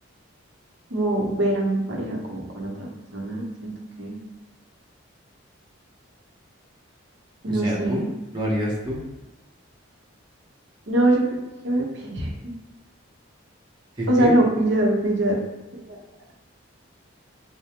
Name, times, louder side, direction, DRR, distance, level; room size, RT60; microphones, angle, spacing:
voice 1, 0.9-4.2 7.4-8.1 10.9-11.4 11.6-12.5 14.1-15.4 15.9-16.0, right 1 dB, 65° right, -1 dB, 0.9 m, -23 dB
voice 2, 7.4-8.0 8.3-9.0 14.0-14.3, equal, 20° right, -5 dB, 0.8 m, -26 dB
5.0 x 2.2 x 2.9 m, 1.1 s
head